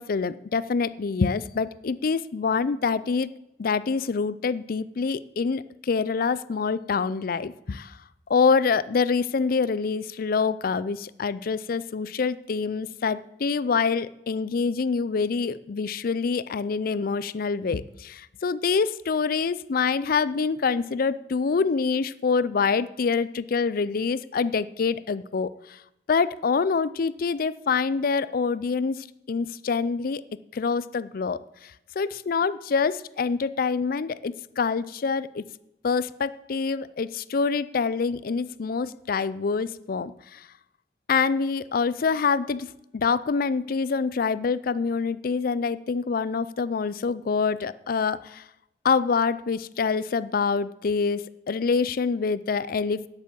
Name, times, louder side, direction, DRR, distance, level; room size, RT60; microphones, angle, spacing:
voice 1, 0.0-3.3 3.6-8.0 8.3-25.8 26.1-30.2 30.5-35.4 35.8-40.5 41.1-48.4 48.8-53.1, left 5 dB, 55° left, 17 dB, 0.4 m, -26 dB
9.8 x 8.4 x 7.6 m, 0.85 s
head